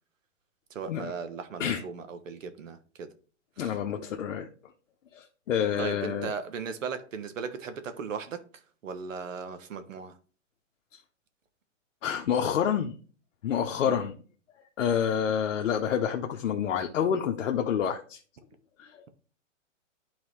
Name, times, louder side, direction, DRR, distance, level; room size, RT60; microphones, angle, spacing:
voice 1, 0.7-3.1 3.6-3.8 5.8-10.2 13.8-14.1, right 5 dB, 75° right, 1.3 m, -37 dB
voice 2, 3.6-4.5 5.1-6.3 12.0-12.9 13.4-14.2 14.8-18.2 18.8-19.0, left 8 dB, 75° left, 0.9 m, -28 dB
11.0 x 4.0 x 3.2 m
hypercardioid pair, 155°, 38 cm